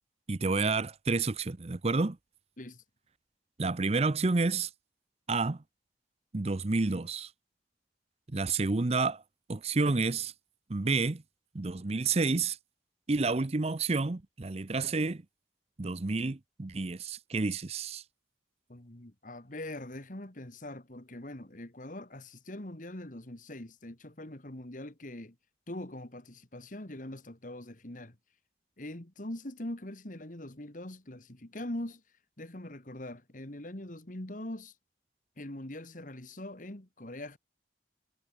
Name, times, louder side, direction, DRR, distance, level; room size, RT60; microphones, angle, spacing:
voice 1, 0.3-2.2 3.6-4.7 5.3-5.6 6.3-7.3 8.3-9.2 9.5-10.3 10.7-11.2 11.5-12.6 13.1-15.2 15.8-18.0, right 3 dB, 35° right, 0.6 m, -29 dB
voice 2, 18.7-25.4 25.7-28.2 28.8-32.0 32.4-34.7 35.4-37.4, left 1 dB, 45° left, 2.2 m, -42 dB
head